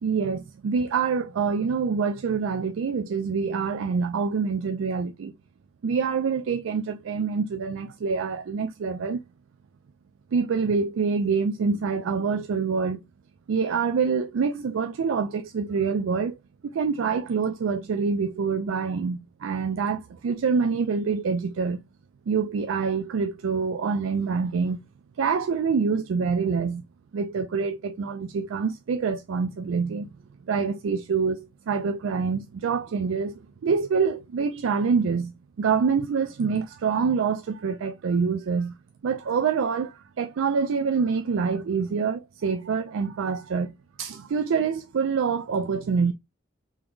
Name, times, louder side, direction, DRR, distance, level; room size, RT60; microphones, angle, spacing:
voice 1, 0.0-5.3 5.8-9.2 10.3-13.0 13.5-16.4 16.7-21.8 22.3-24.8 25.2-26.8 27.1-30.1 30.5-38.7 39.0-43.7 44.0-46.1, right 5 dB, 80° right, 0.4 m, -26 dB
3.5 x 3.5 x 2.4 m
head